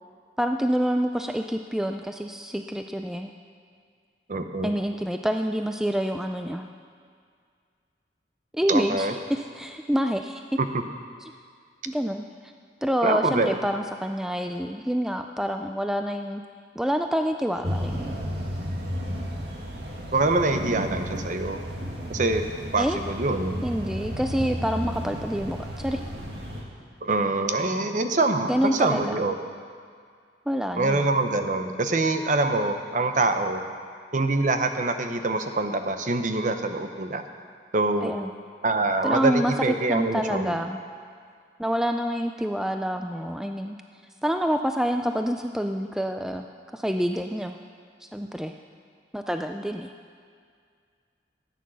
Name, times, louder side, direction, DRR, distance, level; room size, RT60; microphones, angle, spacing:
voice 1, 0.4-3.3 4.6-6.7 8.5-10.4 11.9-12.3 12.8-16.4 16.8-18.2 22.8-23.0 23.6-26.0 28.5-29.1 30.5-31.1 38.0-38.3 39.0-40.8 41.6-43.8 44.2-46.5 46.7-47.6 48.0-48.5 49.1-49.9, equal, 5° right, 5 dB, 0.3 m, -27 dB
voice 2, 4.3-4.7 8.7-9.1 10.6-10.7 13.0-13.6 20.1-21.6 22.1-22.4 22.7-23.6 27.0-29.4 30.8-33.6 34.1-37.2 37.7-38.1 38.6-40.5, right 2 dB, 45° right, 7 dB, 0.8 m, -25 dB
Background Noise Jet City Birds, 17.6-26.6, equal, 65° right, 1.9 m, -33 dB
14.0 x 9.2 x 6.2 m, 2.1 s
head